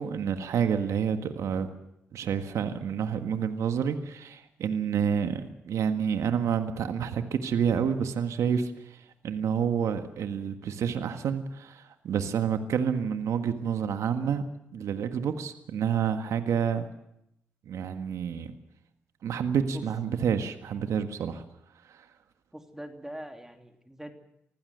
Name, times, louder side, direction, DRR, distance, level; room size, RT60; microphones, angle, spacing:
voice 1, 0.0-1.7 2.1-14.4 14.7-16.9 17.7-18.5 19.2-21.4 21.9-22.0, right 7 dB, 75° right, 8 dB, 1.6 m, -29 dB
voice 2, 22.5-24.1, right 1 dB, 10° right, 4 dB, 3.2 m, -42 dB
25.0 x 15.5 x 8.0 m, 0.81 s
supercardioid pair, 45°, 5 cm